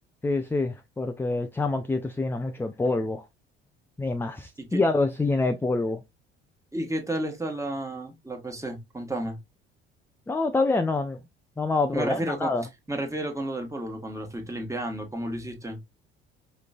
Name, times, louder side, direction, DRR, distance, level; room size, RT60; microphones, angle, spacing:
voice 1, 0.2-3.2 4.0-6.0 10.3-11.2 11.6-12.7, left 3 dB, 5° left, 0.4 m, -26 dB
voice 2, 6.7-9.4 11.9-12.5 12.9-15.8, right 1 dB, 10° right, 1.4 m, -32 dB
5.0 x 3.1 x 2.4 m
figure-of-eight pair, 55°, 31 cm